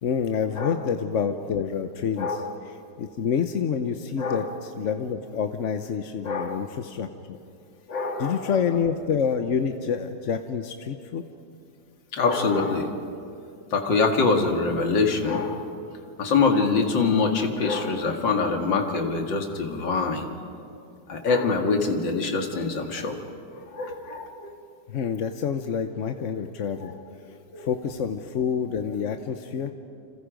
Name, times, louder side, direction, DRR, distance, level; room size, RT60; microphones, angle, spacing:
voice 1, 0.0-7.4 8.2-11.2 24.9-26.9 27.6-29.7, left 7 dB, 55° left, 7 dB, 1.0 m, -28 dB
voice 2, 2.2-2.5 4.2-4.5 6.2-6.6 7.9-8.6 12.1-12.9 13.7-15.6 16.2-20.2 21.1-23.2 23.5-24.5 26.8-26.9 27.5-27.7, left 4 dB, 85° left, 4 dB, 2.6 m, -24 dB
29.0 x 27.0 x 5.2 m, 2.5 s
omnidirectional pair, 2.0 m